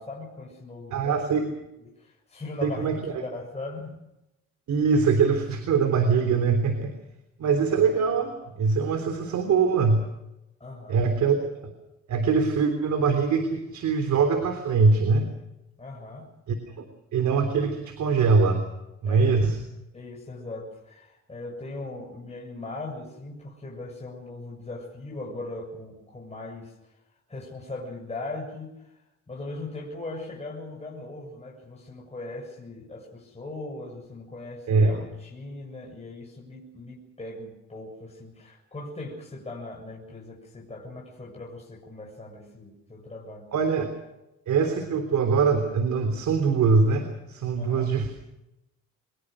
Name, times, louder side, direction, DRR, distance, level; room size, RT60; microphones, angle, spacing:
voice 1, 0.0-1.5 1.8-4.0 10.6-11.1 15.8-16.3 19.1-19.4 19.9-26.7 27.3-43.5 47.6-47.9, left 2 dB, 20° left, -2 dB, 7.0 m, -39 dB
voice 2, 0.9-1.4 2.6-3.2 4.7-6.9 7.4-10.1 10.9-11.4 11.6-11.7 12.1-15.3 16.5-16.9 17.1-18.6 19.0-19.6 34.7-35.0 43.5-43.9 44.5-48.2, right 5 dB, 70° right, 7 dB, 3.5 m, -23 dB
24.0 x 21.5 x 6.5 m, 0.91 s
cardioid pair, 90°, 30 cm